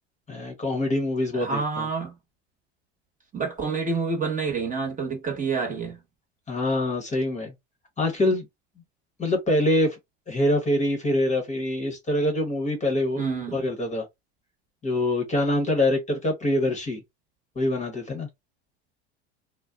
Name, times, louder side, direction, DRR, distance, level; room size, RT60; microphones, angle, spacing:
voice 1, 0.3-1.9 6.5-7.5 8.0-8.4 9.2-10.0 10.3-13.2 13.5-14.0 14.8-17.0 17.6-18.3, left 1 dB, 20° left, 1.0 m, -25 dB
voice 2, 1.3-2.1 3.3-6.0 13.2-13.6, right 4 dB, 20° right, 1.1 m, -28 dB
2.5 x 2.1 x 2.3 m
hypercardioid pair, 95°, 35 cm